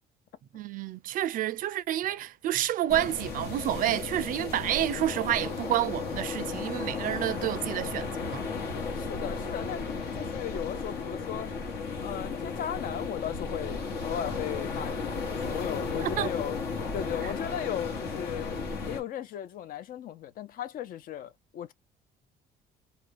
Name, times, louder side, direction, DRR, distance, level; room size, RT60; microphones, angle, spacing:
voice 1, 0.5-8.5 16.0-16.3 17.2-17.3, right 12 dB, 55° right, 0.4 m, -29 dB
sound 1, 2.9-19.0, left 4 dB, 75° left, 1.1 m, -34 dB
voice 2, 9.0-9.9 10.1-11.5 12.0-16.5 16.9-21.7, left 10 dB, 55° left, 0.5 m, -36 dB
2.4 x 2.2 x 3.3 m
cardioid pair, 110°, 17 cm